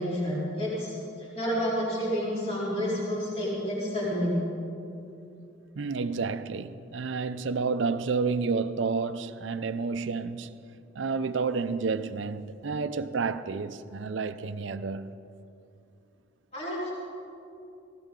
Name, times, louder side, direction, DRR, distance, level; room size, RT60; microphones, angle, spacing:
voice 1, 0.0-4.4 16.5-16.9, equal, 30° left, 3.7 m, -29 dB
voice 2, 5.8-10.5 10.9-15.1, right 4 dB, 65° right, 0.5 m, -30 dB
18.5 x 17.0 x 3.7 m
head